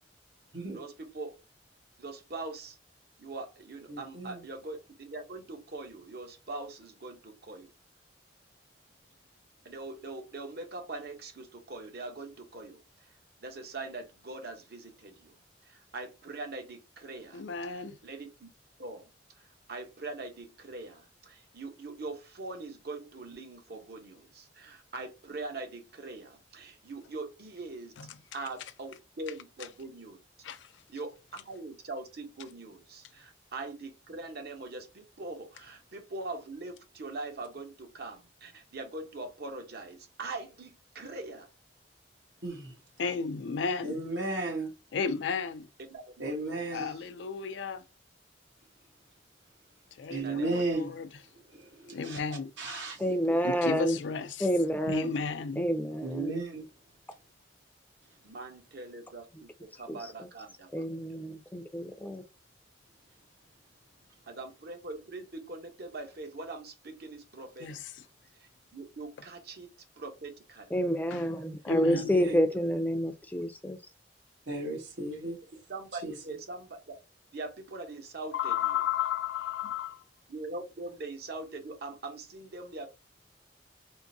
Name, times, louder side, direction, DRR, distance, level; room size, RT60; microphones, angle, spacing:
voice 1, 0.7-1.4 2.0-2.8 3.2-7.7 9.6-12.8 13.4-15.4 15.6-18.5 18.8-19.1 19.7-27.9 28.3-30.2 30.9-41.5 45.9-46.3 46.7-47.0 50.1-50.8 58.2-60.8 64.3-67.8 68.4-69.7 70.0-70.7 72.0-72.4 75.7-76.9 77.3-78.8 80.3-82.9, right 2 dB, 60° right, 0.9 m, -42 dB
voice 2, 3.9-4.4 42.4-42.7 43.8-44.7 46.2-46.9 50.1-50.9 51.5-52.2 52.6-53.0 56.0-56.6 71.9-72.4 74.5-75.4 76.0-76.1, right 2 dB, 80° right, 1.2 m, -34 dB
voice 3, 17.3-18.0 28.0-28.2 30.4-30.7 43.0-44.0 44.9-45.7 46.7-47.8 50.0-51.1 51.9-52.5 53.4-54.5 54.9-55.6 67.6-68.0 71.1-71.2 71.7-72.1 78.3-80.0, left 6 dB, 85° left, 0.4 m, -33 dB
voice 4, 53.0-54.0 54.4-55.1 55.6-56.4 59.9-60.3 60.7-62.2 70.7-73.8, equal, 10° left, 0.4 m, -29 dB
3.6 x 2.6 x 2.6 m
head